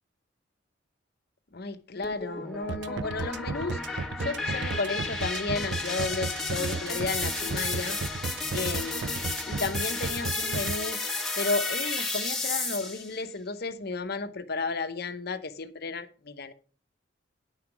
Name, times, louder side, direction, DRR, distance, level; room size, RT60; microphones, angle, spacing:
voice 1, 1.5-8.0 8.5-11.0 11.4-16.5, left 3 dB, 55° left, 0.8 m, -33 dB
sound 1, 2.0-13.2, left 3 dB, ahead, 1.5 m, -33 dB
sound 2, 2.7-10.7, right 4 dB, 60° right, 0.5 m, -33 dB
9.9 x 5.7 x 5.9 m
head